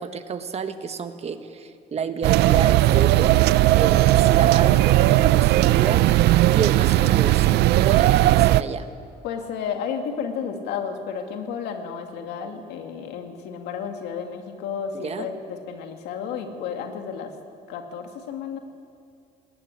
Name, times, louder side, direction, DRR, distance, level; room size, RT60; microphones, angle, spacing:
voice 1, 0.0-3.4 3.8-6.0 6.4-8.9 15.0-15.3, right 6 dB, 40° right, 8 dB, 1.5 m, -30 dB
sound 1, 2.2-8.6, right 16 dB, 75° right, 0.5 m, -17 dB
voice 2, 9.2-17.3 17.7-18.6, left 7 dB, 85° left, 5 dB, 2.4 m, -32 dB
20.0 x 17.5 x 9.7 m, 2.4 s
cardioid pair, 110°, 17 cm